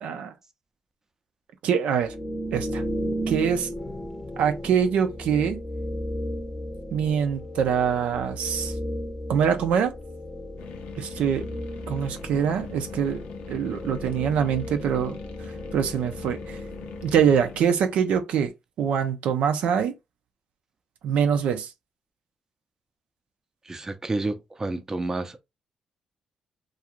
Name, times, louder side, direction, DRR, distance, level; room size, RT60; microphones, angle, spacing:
voice 1, 0.0-0.3 1.6-2.1 2.5-2.8 3.3-3.7 4.4-5.6 6.9-8.7 9.3-9.9 11.0-11.5 11.9-13.2 13.5-15.2 15.7-16.6 17.0-18.5 18.8-19.9 21.0-21.7, right 7 dB, 75° right, 0.4 m, -24 dB
sound 1, 2.0-17.8, equal, 15° left, 0.7 m, -35 dB
sound 2, 10.6-17.7, left 7 dB, 80° left, 0.5 m, -43 dB
voice 2, 23.7-25.4, right 2 dB, 25° right, 0.5 m, -30 dB
2.5 x 2.3 x 2.9 m
supercardioid pair, 60°, 2 cm